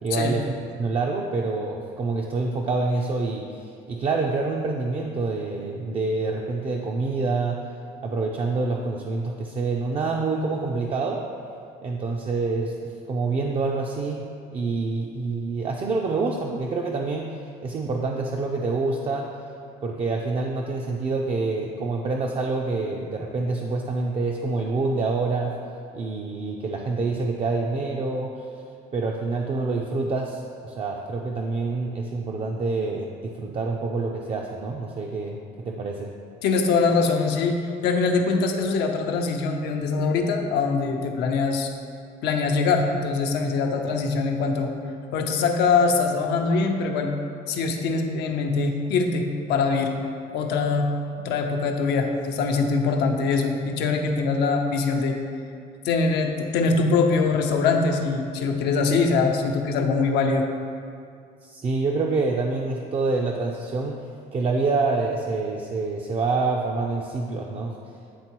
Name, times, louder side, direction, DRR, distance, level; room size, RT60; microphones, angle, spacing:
voice 1, 0.0-7.7 8.0-11.2 11.8-14.2 14.5-17.4 17.6-19.4 19.8-25.6 25.9-28.4 28.9-36.1 61.4-64.1 64.3-67.7, right 3 dB, 35° right, 0 dB, 0.4 m, -27 dB
voice 2, 36.4-41.7 42.2-44.7 45.1-47.1 47.5-50.0 50.3-55.2 55.8-60.5, left 4 dB, 85° left, 3 dB, 0.6 m, -23 dB
9.3 x 3.5 x 3.0 m, 2.3 s
cardioid pair, 110°, 17 cm